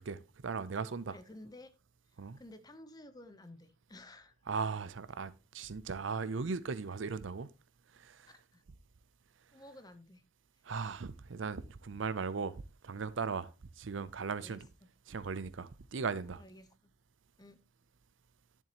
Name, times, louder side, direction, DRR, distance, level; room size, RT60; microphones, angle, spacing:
voice 1, 0.0-1.2 2.2-2.4 4.5-7.5 7.9-8.3 10.6-12.5 12.8-13.5 13.8-14.7 15.1-16.4, right 5 dB, 65° right, 0.5 m, -38 dB
voice 2, 1.1-1.7 2.4-4.3 8.3-8.6 9.5-10.2 14.3-14.6 16.4-16.9 17.4-17.6, left 1 dB, 20° left, 0.8 m, -53 dB
10.5 x 7.2 x 2.9 m
head